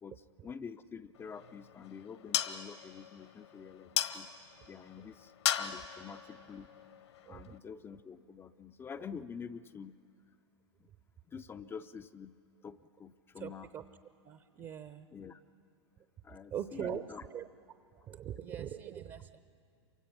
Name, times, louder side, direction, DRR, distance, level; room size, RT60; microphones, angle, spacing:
voice 1, 0.0-4.3 4.7-6.7 7.3-10.0 10.3-10.4 10.8-10.9 11.3-12.4 12.6-13.7 14.6-14.7 15.1-15.4 16.2-17.2, left 6 dB, 15° left, 10 dB, 0.5 m, -47 dB
sound 1, 1.2-7.6, left 11 dB, 65° left, 1.2 m, -38 dB
voice 2, 13.4-13.8 14.2-15.1 16.5-17.5 17.9-19.4, right 9 dB, 25° right, 12 dB, 0.8 m, -41 dB
28.0 x 24.5 x 5.9 m, 2.5 s
figure-of-eight pair, 105°, 15 cm